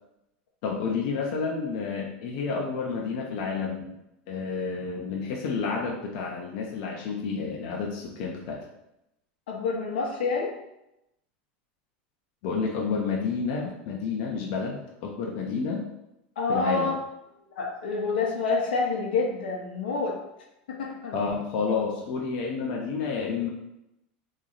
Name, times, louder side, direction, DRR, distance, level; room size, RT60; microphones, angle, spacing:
voice 1, 0.6-4.0 4.3-8.7 12.4-15.8 16.5-16.9 21.1-23.5, left 5 dB, 60° left, -1 dB, 0.7 m, -30 dB
voice 2, 9.5-10.5 16.4-16.9 17.6-20.2 20.7-21.2, left 4 dB, 90° left, 0 dB, 0.9 m, -27 dB
3.1 x 2.7 x 3.9 m, 0.86 s
supercardioid pair, 125°, 5 cm